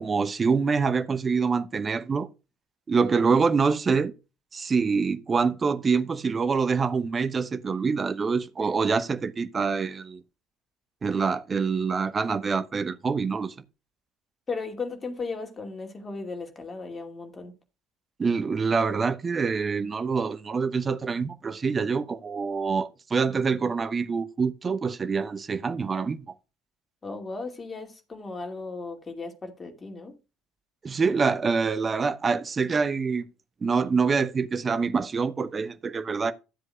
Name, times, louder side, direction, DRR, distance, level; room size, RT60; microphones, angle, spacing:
voice 1, 0.0-2.3 2.9-4.1 4.5-10.2 11.0-13.5 18.2-26.3 30.8-33.2 33.6-36.3, right 5 dB, 30° right, 0.9 m, -25 dB
voice 2, 14.5-17.5 27.0-30.2, left 4 dB, 25° left, 2.4 m, -36 dB
13.0 x 7.7 x 2.4 m
figure-of-eight pair, 55°, 0 cm